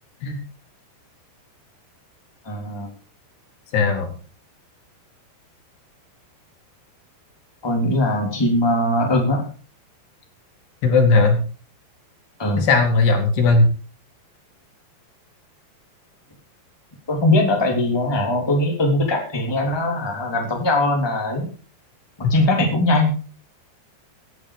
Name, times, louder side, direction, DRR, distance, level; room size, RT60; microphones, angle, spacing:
voice 1, 2.4-2.9 7.6-9.5 12.4-12.6 17.1-21.5 22.3-23.1, left 1 dB, 5° left, 1 dB, 2.8 m, -20 dB
voice 2, 3.7-4.1 10.8-11.4 12.6-13.7, left 3 dB, 70° left, 4 dB, 4.8 m, -17 dB
16.0 x 10.5 x 5.1 m, 0.38 s
omnidirectional pair, 4.9 m